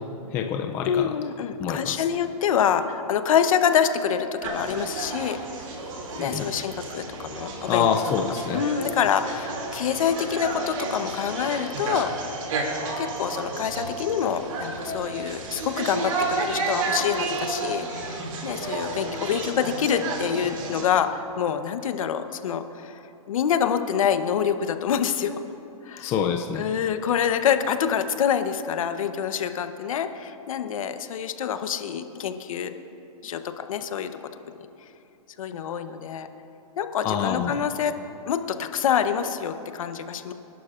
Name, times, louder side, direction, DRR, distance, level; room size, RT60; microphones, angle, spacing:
voice 1, 0.3-1.1 1.6-2.0 6.2-6.4 7.7-8.6 26.0-26.6 37.0-37.5, left 7 dB, 10° left, 3 dB, 0.3 m, -26 dB
voice 2, 0.8-5.4 6.2-8.1 8.5-12.1 13.0-25.3 25.8-26.1 26.5-32.7 33.2-34.3 35.4-36.3 36.8-38.0 38.3-40.3, left 8 dB, 60° left, 9 dB, 0.9 m, -26 dB
sound 1, 4.4-20.9, right 3 dB, 55° right, 2.6 m, -31 dB
27.0 x 11.5 x 2.5 m, 2.9 s
hypercardioid pair, 160°, 20 cm